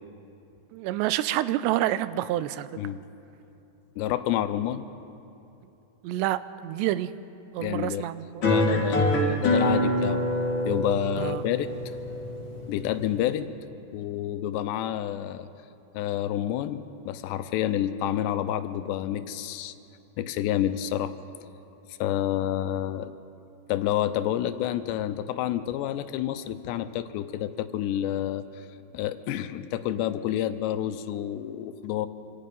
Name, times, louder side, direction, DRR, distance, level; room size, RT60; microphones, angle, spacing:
voice 1, 0.7-2.7 6.0-7.1 7.5-8.4 11.2-11.4, right 14 dB, 85° right, 14 dB, 2.9 m, -28 dB
voice 2, 4.0-4.9 7.6-8.1 8.4-10.2 10.7-11.7 12.7-13.5 13.9-15.5 15.9-19.7 20.2-21.2 22.0-23.1 23.7-28.7 28.9-32.1, left 12 dB, 85° left, 11 dB, 3.0 m, -29 dB
sound 1, 8.4-13.4, left 1 dB, 30° left, 3.2 m, -26 dB
26.5 x 26.0 x 5.4 m, 2.9 s
omnidirectional pair, 4.9 m